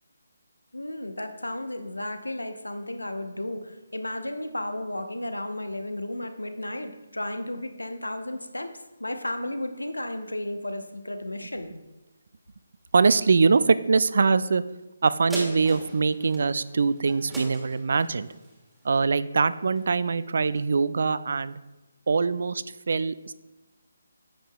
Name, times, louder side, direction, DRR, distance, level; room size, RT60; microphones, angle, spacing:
voice 1, 0.7-8.7 9.0-11.7, left 1 dB, 85° left, 7 dB, 0.8 m, -33 dB
voice 2, 12.9-14.6 15.0-18.3 18.8-21.6 22.1-23.3, right 4 dB, 55° right, 16 dB, 0.3 m, -23 dB
sound 1, 15.3-20.1 20.5-20.6, right 1 dB, 5° right, 1.4 m, -40 dB
10.0 x 7.2 x 2.3 m, 1.1 s
figure-of-eight pair, 145°, 0 cm